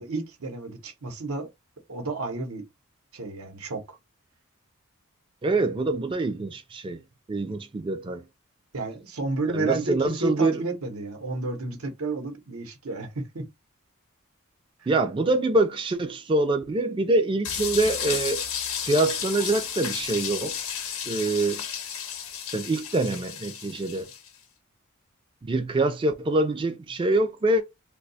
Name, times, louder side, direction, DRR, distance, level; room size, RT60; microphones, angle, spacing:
voice 1, 0.0-1.5 1.9-2.7 3.1-4.0 8.7-13.5, right 2 dB, 85° right, 0.8 m, -31 dB
voice 2, 5.4-7.0 7.3-8.2 9.5-10.6 14.9-18.4 18.8-20.6 21.1-21.6 22.5-24.1 25.4-27.6, right 2 dB, 25° right, 0.3 m, -25 dB
sound 1, 17.4-24.3, left 8 dB, 70° left, 0.7 m, -33 dB
2.7 x 2.2 x 3.9 m
head